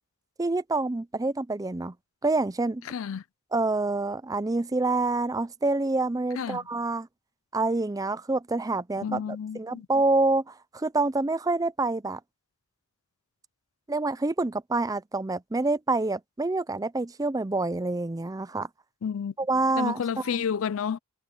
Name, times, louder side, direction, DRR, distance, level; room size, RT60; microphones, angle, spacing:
voice 1, 0.4-1.9 2.2-2.8 3.5-7.1 7.5-12.2 13.9-18.7 19.4-20.0 20.3-20.4, right 2 dB, 15° right, 0.5 m, -27 dB
voice 2, 2.9-3.2 6.4-6.6 9.0-9.9 19.0-19.3 19.7-21.0, left 7 dB, 60° left, 0.4 m, -30 dB
head